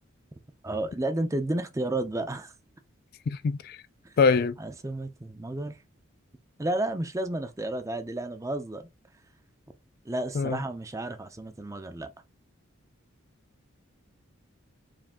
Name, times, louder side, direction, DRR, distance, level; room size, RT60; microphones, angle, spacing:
voice 1, 0.6-2.5 4.0-4.2 4.6-5.8 6.6-8.9 10.0-12.1, right 1 dB, 15° right, 0.5 m, -32 dB
voice 2, 3.3-3.8 4.2-4.6 10.4-10.6, left 5 dB, 45° left, 0.3 m, -23 dB
4.9 x 2.7 x 3.5 m
head